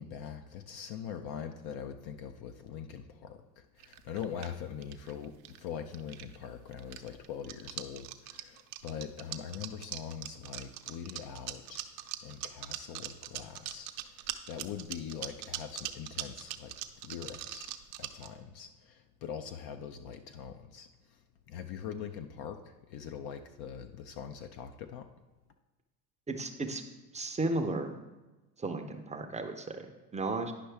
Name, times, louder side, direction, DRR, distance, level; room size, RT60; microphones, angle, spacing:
voice 1, 0.0-11.8 12.2-13.9 14.5-16.7 17.0-17.7 18.0-20.9 21.5-25.1, left 8 dB, 50° left, 7 dB, 0.6 m, -42 dB
sound 1, 3.8-5.6 5.9-6.5 6.7-18.3, right 14 dB, 70° right, 0.7 m, -41 dB
voice 2, 26.3-26.8 27.1-27.9 28.6-29.9 30.1-30.5, right 2 dB, 15° right, 5 dB, 0.6 m, -34 dB
10.0 x 5.4 x 3.4 m, 1.2 s
hypercardioid pair, 90°, 50 cm